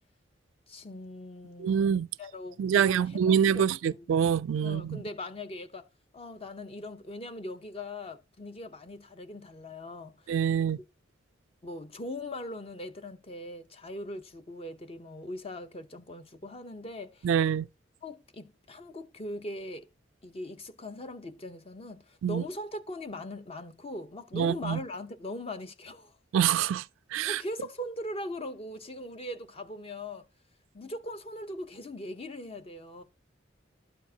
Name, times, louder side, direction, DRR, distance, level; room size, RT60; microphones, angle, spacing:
voice 1, 0.7-4.3 4.6-5.9 6.1-10.8 11.6-17.5 18.0-19.9 20.2-26.2 27.3-30.2 30.7-33.0, left 1 dB, 30° left, 0.7 m, -40 dB
voice 2, 1.6-2.1 2.6-5.0 10.3-10.8 17.2-17.7 22.2-22.4 24.3-24.8 26.3-26.8 27.1-27.4, right 8 dB, 90° right, 0.3 m, -25 dB
12.0 x 4.5 x 2.8 m
head